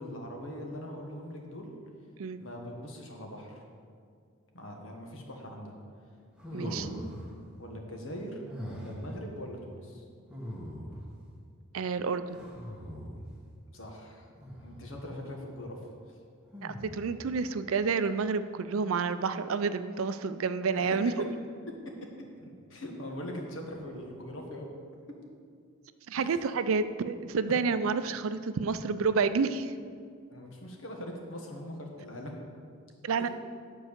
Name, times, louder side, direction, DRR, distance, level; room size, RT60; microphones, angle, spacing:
voice 1, 0.0-1.7 2.4-3.5 4.5-5.7 6.5-7.0 7.6-8.4 8.7-10.0 13.7-14.3 14.6-15.8 22.4-24.7 26.1-26.4 30.3-32.3 33.2-33.3, equal, 65° left, 1 dB, 1.4 m, -41 dB
sound 1, 6.4-7.3 8.4-9.1 10.3-11.1 12.3-13.3 14.4-14.9 16.5-17.2, equal, 5° right, 1.2 m, -41 dB
voice 2, 6.5-6.9 11.7-12.4 16.6-21.3 26.1-29.7 33.0-33.3, right 5 dB, 75° right, 12 dB, 0.4 m, -29 dB
9.8 x 4.7 x 6.7 m, 2.2 s
head